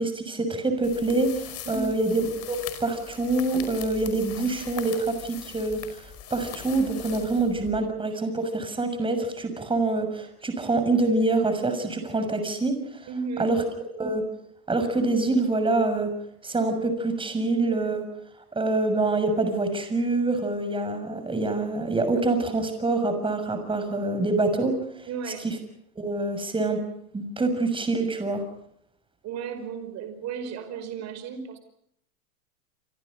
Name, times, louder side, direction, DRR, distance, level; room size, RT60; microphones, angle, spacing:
voice 1, 0.0-5.8 6.3-13.1 13.4-13.6 14.0-14.2 14.7-16.1 16.4-18.1 18.5-24.8 25.4-25.5 25.9-26.8 27.1-28.4, right 2 dB, 10° right, 8 dB, 6.5 m, -25 dB
sound 1, 0.8-8.0, left 9 dB, 35° left, 5.5 m, -41 dB
voice 2, 13.1-13.5 25.1-25.4 29.2-31.6, right 6 dB, 35° right, 9 dB, 5.0 m, -34 dB
28.5 x 26.0 x 5.3 m, 0.74 s
hypercardioid pair, 115°, 44 cm